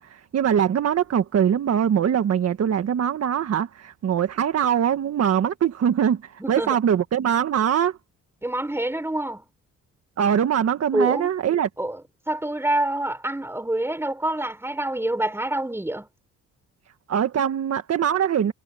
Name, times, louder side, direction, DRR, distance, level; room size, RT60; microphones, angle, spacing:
voice 1, 0.0-8.0 10.2-11.7 17.1-18.5, right 9 dB, 55° right, 1.7 m, -22 dB
voice 2, 6.4-6.8 8.4-9.4 10.9-11.3 11.8-12.0 12.3-16.1, right 1 dB, 10° right, 5.6 m, -26 dB
cardioid pair, 90°, 30 cm